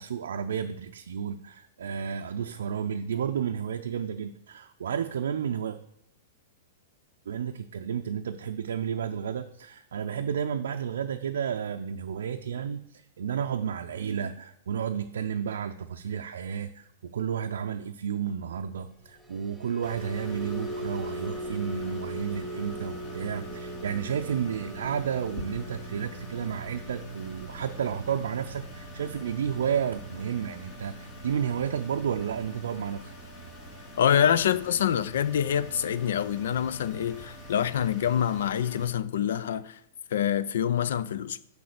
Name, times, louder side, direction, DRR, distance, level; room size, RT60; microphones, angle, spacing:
voice 1, 0.0-5.8 7.3-33.1, right 8 dB, 75° right, 0.5 m, -32 dB
sound 1, 19.0-35.4 35.8-36.1 36.4-36.6, equal, ahead, 1.7 m, -42 dB
sound 2, 19.8-38.8, right 1 dB, 45° left, 3.8 m, -44 dB
voice 2, 34.0-39.8 40.1-41.5, left 9 dB, 70° left, 0.5 m, -26 dB
7.0 x 4.8 x 6.6 m
hypercardioid pair, 110°, 0 cm